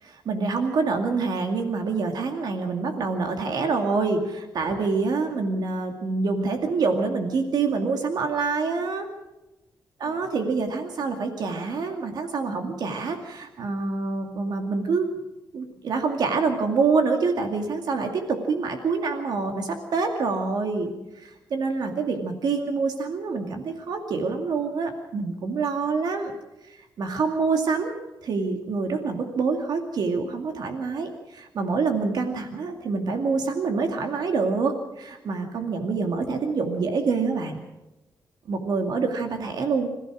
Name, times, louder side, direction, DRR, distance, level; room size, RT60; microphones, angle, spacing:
voice 1, 0.0-9.1 10.0-15.1 15.5-26.3 26.6-27.9 28.2-37.6 38.5-39.9, right 4 dB, 65° right, 4 dB, 2.3 m, -26 dB
27.0 x 15.5 x 6.3 m, 1.0 s
wide cardioid pair, 175°, 7 cm